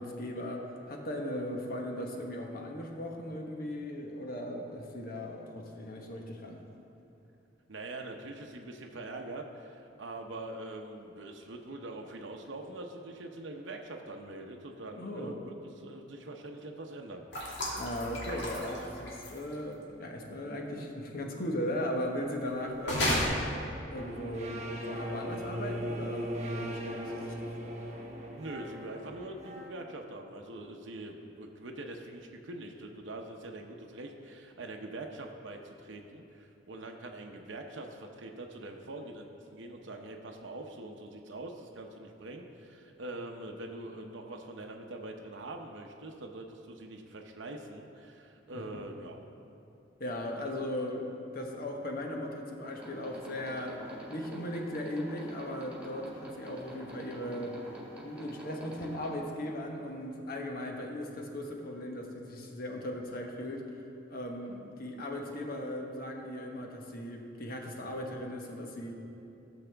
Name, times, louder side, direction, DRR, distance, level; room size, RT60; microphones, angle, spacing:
voice 1, 0.0-6.6 14.9-15.4 17.8-23.3 23.9-27.7 48.5-48.6 50.0-51.1 51.3-53.8 54.1-57.6 58.0-63.8 64.1-68.9, left 1 dB, 55° left, 1 dB, 1.2 m, -38 dB
voice 2, 7.7-17.3 28.3-49.2, right 2 dB, 90° right, 2 dB, 0.8 m, -43 dB
sound 1, 17.3-19.5 22.8-23.2, left 1 dB, 70° left, 2.3 m, -32 dB
sound 2, 23.9-29.7, equal, 40° right, 1.0 m, -38 dB
sound 3, 52.6-59.1, equal, 10° right, 1.8 m, -47 dB
15.5 x 6.9 x 3.4 m, 2.8 s
head